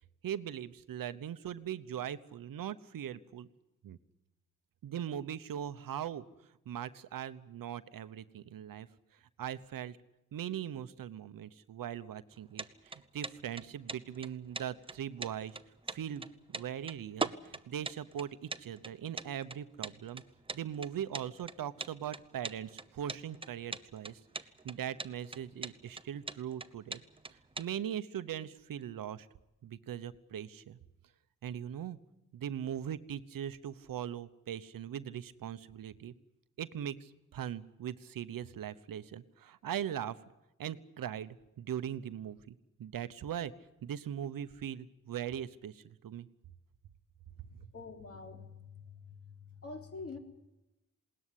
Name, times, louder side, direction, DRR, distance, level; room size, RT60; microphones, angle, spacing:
voice 1, 0.2-3.5 3.8-4.0 4.8-6.2 6.7-8.9 9.4-10.0 10.3-15.6 15.9-16.3 16.5-20.2 20.5-24.2 24.6-27.0 27.6-29.3 29.6-30.8 31.4-32.0 32.3-36.1 36.6-40.2 40.6-43.5 43.8-46.3, right 10 dB, 85° right, 13 dB, 1.0 m, -40 dB
sound 1, 12.3-27.7, right 3 dB, 15° right, 0.8 m, -41 dB
voice 2, 47.7-49.3 49.6-50.2, left 4 dB, 45° left, 3 dB, 3.7 m, -46 dB
20.5 x 18.5 x 10.0 m, 0.95 s
wide cardioid pair, 115°, 33 cm